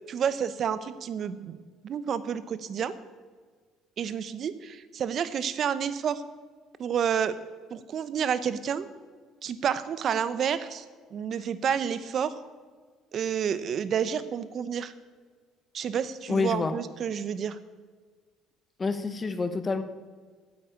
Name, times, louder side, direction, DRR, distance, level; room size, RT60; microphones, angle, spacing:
voice 1, 0.1-1.6 1.8-2.9 4.0-6.2 6.8-7.3 7.7-8.9 9.4-10.8 11.1-12.4 13.1-14.9 15.7-17.6, right 8 dB, 50° right, 14 dB, 0.9 m, -29 dB
voice 2, 16.3-16.7 18.8-19.8, left 4 dB, 25° left, 9 dB, 1.1 m, -28 dB
9.7 x 8.4 x 9.0 m, 1.5 s
cardioid pair, 115°, 0 cm